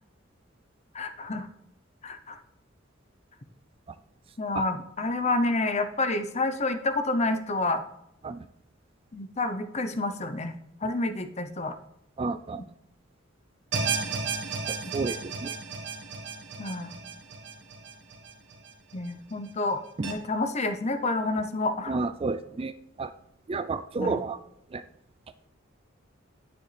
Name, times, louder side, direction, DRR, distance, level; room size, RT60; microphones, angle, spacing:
voice 1, 0.9-1.5 2.0-2.4 4.4-7.8 9.1-10.5 10.8-11.8 16.6-16.9 18.9-22.1 23.9-24.2, left 2 dB, 35° left, 9 dB, 0.8 m, -29 dB
voice 2, 12.2-12.6 14.9-15.2 15.4-15.5 21.9-22.7 23.0-23.1 23.5-24.4 24.7-24.8, right 3 dB, 30° right, 11 dB, 0.4 m, -30 dB
sound 1, 13.7-18.9 19.3-19.4 20.0-20.1, right 5 dB, 60° right, 1.6 m, -33 dB
10.0 x 9.3 x 3.4 m, 0.79 s
head